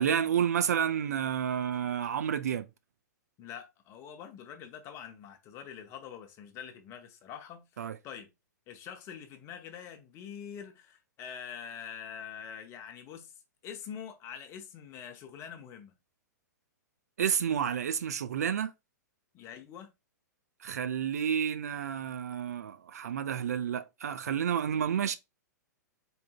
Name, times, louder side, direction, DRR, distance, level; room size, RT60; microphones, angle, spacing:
voice 1, 0.0-2.7 7.8-8.0 17.2-18.7 20.6-25.2, right 8 dB, 60° right, 0.4 m, -30 dB
voice 2, 3.4-8.3 8.7-13.3 13.6-15.9 19.3-19.9, left 8 dB, 30° left, 0.8 m, -45 dB
4.1 x 3.5 x 2.2 m
figure-of-eight pair, 105°, 10 cm